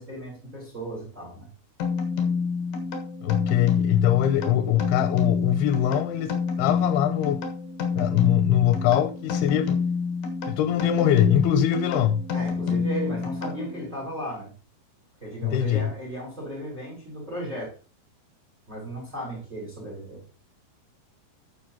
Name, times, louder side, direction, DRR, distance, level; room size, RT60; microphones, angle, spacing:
voice 1, 0.0-1.5 12.3-14.5 15.2-17.7 18.7-20.2, right 1 dB, 20° right, 4.4 m, -35 dB
sound 1, 1.8-14.0, left 5 dB, 65° left, 3.0 m, -28 dB
voice 2, 3.2-6.3 6.6-7.4 7.9-9.8 10.5-12.2 15.4-15.9, left 11 dB, 90° left, 2.7 m, -22 dB
13.0 x 7.2 x 2.9 m
omnidirectional pair, 4.6 m